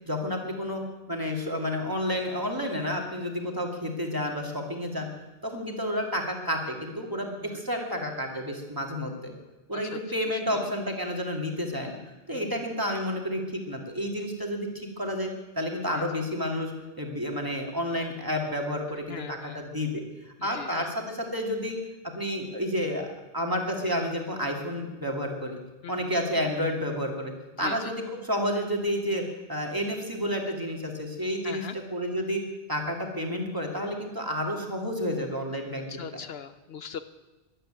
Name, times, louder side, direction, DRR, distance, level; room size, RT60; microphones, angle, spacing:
voice 1, 0.1-0.8 1.1-5.1 5.4-9.3 9.7-12.0 12.3-16.7 17.0-20.0 20.4-21.8 22.1-23.1 23.3-25.6 25.9-27.3 27.6-32.4 32.7-35.9, equal, 20° right, 1 dB, 2.6 m, -30 dB
voice 2, 10.3-10.7 12.3-12.5 15.9-16.0 19.1-19.7 20.4-20.9 25.8-26.1 27.5-27.9 31.4-31.8 35.9-37.0, left 7 dB, 65° left, 11 dB, 0.9 m, -41 dB
13.5 x 12.0 x 9.0 m, 1.1 s
omnidirectional pair, 1.1 m